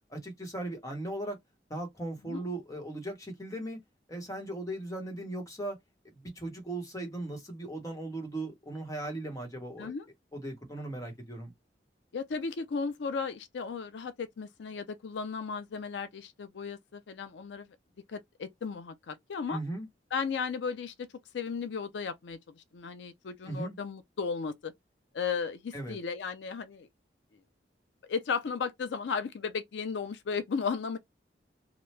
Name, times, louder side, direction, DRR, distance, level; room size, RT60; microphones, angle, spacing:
voice 1, 0.1-1.4 1.7-3.8 4.1-5.8 6.1-9.9 10.3-11.5 19.5-19.9 23.4-23.8 25.7-26.0, right 1 dB, 20° left, 1.1 m, -38 dB
voice 2, 12.1-17.7 18.1-19.6 20.1-21.1 21.3-24.7 25.1-26.9 28.1-31.0, left 5 dB, 85° left, 0.4 m, -35 dB
2.8 x 2.2 x 3.2 m
head